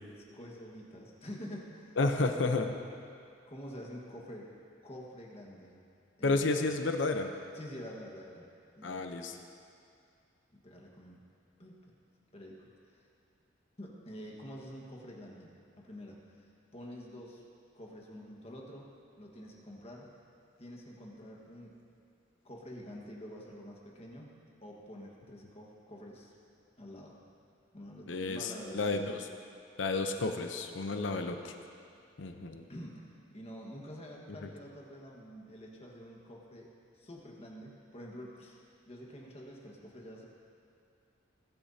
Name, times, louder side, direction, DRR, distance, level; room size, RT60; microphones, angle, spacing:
voice 1, 0.3-2.0 3.5-4.5 4.8-5.8 6.2-6.6 7.5-8.5 8.8-9.1 10.6-11.2 11.6-11.9 12.3-13.0 13.8-17.4 17.7-18.9 19.2-20.1 20.6-21.7 22.4-24.3 24.6-26.3 26.8-27.2 27.7-28.8 30.9-31.2 32.7-40.3, equal, 35° left, -2 dB, 1.5 m, -47 dB
voice 2, 2.0-2.7 6.2-7.3 8.8-9.4 28.1-29.1 29.8-31.4 32.2-32.6, left 3 dB, 75° left, 6 dB, 0.8 m, -31 dB
20.0 x 10.5 x 2.8 m, 2.4 s
head